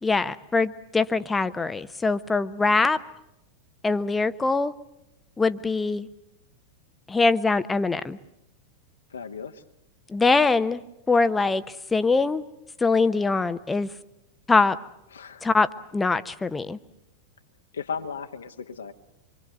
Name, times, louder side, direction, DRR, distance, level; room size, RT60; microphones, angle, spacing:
voice 1, 0.0-3.0 3.8-4.7 5.4-6.1 7.1-8.2 10.1-10.8 11.1-12.4 12.8-13.9 14.5-14.8 15.4-16.8, left 3 dB, 10° left, 13 dB, 0.9 m, -23 dB
voice 2, 9.1-9.6 15.1-15.5 17.7-18.9, left 6 dB, 70° left, 5 dB, 1.3 m, -35 dB
26.5 x 24.0 x 8.0 m, 0.88 s
figure-of-eight pair, 90°, 0 cm